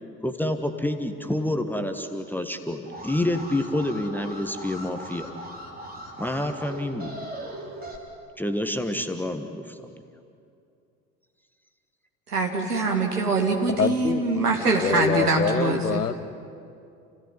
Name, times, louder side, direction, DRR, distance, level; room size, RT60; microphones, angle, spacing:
voice 1, 0.2-5.3 6.2-7.1 8.4-9.9, left 1 dB, 5° left, 6 dB, 1.5 m, -28 dB
Alarm, 2.8-8.0, right 1 dB, 20° right, 4.7 m, -39 dB
voice 2, 12.3-16.0, right 3 dB, 80° right, 2 dB, 2.1 m, -24 dB
voice 3, 13.8-14.2 14.8-16.2, left 6 dB, 80° left, 13 dB, 1.0 m, -25 dB
29.5 x 17.0 x 9.7 m, 2.5 s
figure-of-eight pair, 65°, 46 cm